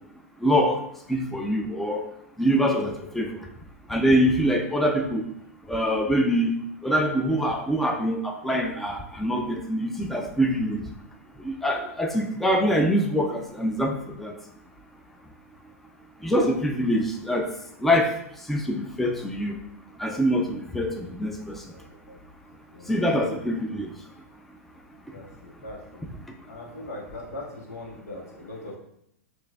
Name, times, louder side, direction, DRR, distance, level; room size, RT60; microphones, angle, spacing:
voice 1, 0.4-0.8 1.1-2.0 2.4-3.3 3.9-5.2 5.7-6.5 6.8-10.8 11.4-14.3 16.2-17.5 17.8-18.1 18.5-19.5 20.0-20.9 21.2-21.6 22.9-23.9, equal, 5° left, 2 dB, 0.4 m, -24 dB
voice 2, 22.7-23.0 25.1-26.1 26.4-28.8, left 2 dB, 85° left, -1 dB, 1.2 m, -40 dB
6.3 x 2.5 x 2.2 m, 0.73 s
hypercardioid pair, 120°, 8 cm